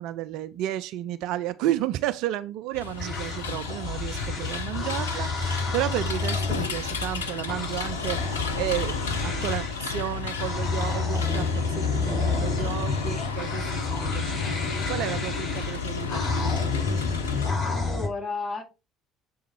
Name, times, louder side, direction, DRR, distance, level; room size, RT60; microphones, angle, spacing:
voice 1, 0.0-14.6 14.9-16.6, right 13 dB, 55° right, 0.3 m, -32 dB
sound 1, 2.7-17.5, left 5 dB, 75° left, 0.6 m, -33 dB
sound 2, 3.0-9.9 10.3-18.1, left 4 dB, 45° left, 3.8 m, -30 dB
voice 2, 17.4-18.6, left 3 dB, 10° left, 2.1 m, -33 dB
6.8 x 3.6 x 4.3 m
figure-of-eight pair, 55°, 0 cm